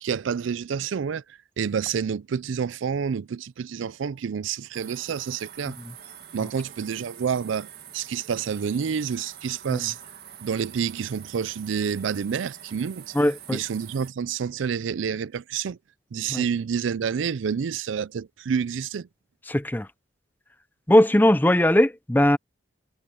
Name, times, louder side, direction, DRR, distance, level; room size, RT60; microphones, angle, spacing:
voice 1, 0.0-1.2 1.6-5.8 6.3-7.7 7.9-10.0 10.4-13.1 13.5-15.8 16.1-19.1, right 7 dB, 80° right, 0.4 m, -28 dB
sound 1, 4.7-14.1, right 9 dB, 55° right, 2.0 m, -45 dB
voice 2, 13.1-13.6 16.3-16.4 19.5-19.9 20.9-22.4, left 1 dB, 10° left, 0.6 m, -19 dB
head